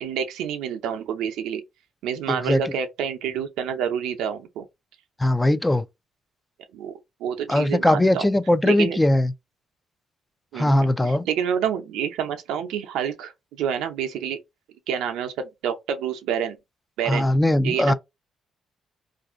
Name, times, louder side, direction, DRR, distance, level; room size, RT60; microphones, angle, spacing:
voice 1, 0.0-1.6 2.0-4.6 6.7-8.2 8.6-9.0 10.5-14.4 14.9-16.6 17.0-17.3 17.6-17.9, right 8 dB, 85° right, 0.6 m, -28 dB
voice 2, 2.3-2.6 5.2-5.8 7.5-9.3 10.5-11.3 17.1-17.9, left 1 dB, 15° left, 0.4 m, -20 dB
2.5 x 2.4 x 3.5 m
supercardioid pair, 70°, 0 cm